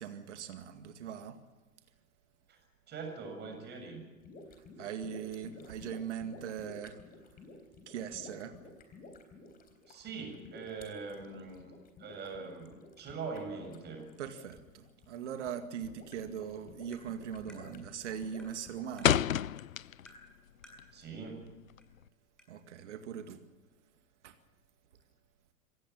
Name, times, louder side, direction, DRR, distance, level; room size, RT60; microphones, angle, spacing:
voice 1, 0.0-1.4 4.8-7.0 7.9-8.6 14.2-19.2 22.5-23.4 24.2-24.4, right 8 dB, 55° right, 8 dB, 2.1 m, -40 dB
voice 2, 2.9-4.1 9.9-14.1 20.9-21.6, right 4 dB, 25° right, 4 dB, 7.4 m, -42 dB
sound 1, 4.2-18.9, left 3 dB, 20° left, 3.8 m, -53 dB
sound 2, 15.8-16.2 16.5-16.9 17.2-17.6 18.0-20.3 20.6-22.1, left 10 dB, 70° left, 0.6 m, -31 dB
Tap, 16.9-17.1 17.5-17.6 18.4-18.5 19.0-19.1 20.1-20.2 20.6-20.8 21.8-21.9 22.4-22.5, equal, ahead, 6.2 m, -55 dB
25.5 x 18.0 x 7.1 m, 1.2 s
figure-of-eight pair, 110°, 42 cm